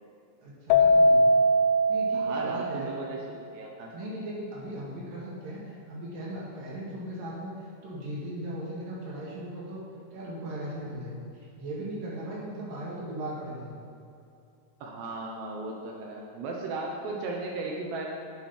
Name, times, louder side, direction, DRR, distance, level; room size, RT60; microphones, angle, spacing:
voice 1, 0.4-1.3 1.9-2.9 3.9-9.8 10.1-13.8, right 1 dB, 55° right, -5 dB, 2.9 m, -38 dB
Keyboard (musical), 0.7-3.2, equal, 85° left, 2.6 m, -22 dB
voice 2, 2.1-3.9 14.8-18.1, right 3 dB, 75° right, -1 dB, 2.6 m, -36 dB
9.0 x 8.6 x 5.7 m, 2.6 s
omnidirectional pair, 5.9 m